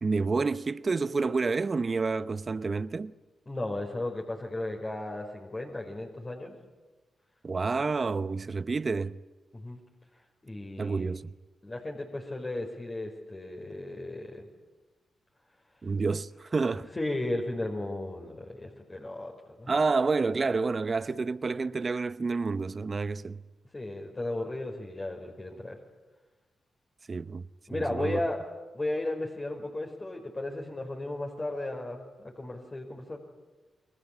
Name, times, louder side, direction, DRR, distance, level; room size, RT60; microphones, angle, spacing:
voice 1, 0.0-3.1 7.4-9.2 10.8-11.3 15.8-16.9 19.7-23.4 27.1-27.4 27.7-28.2, right 4 dB, 45° right, 0.8 m, -29 dB
voice 2, 3.5-6.5 9.5-9.8 10.4-11.1 11.6-14.5 16.9-19.7 23.7-25.8 27.7-28.4 28.7-33.2, left 2 dB, 30° left, 5.1 m, -35 dB
30.0 x 22.5 x 8.5 m
supercardioid pair, 45°, 0 cm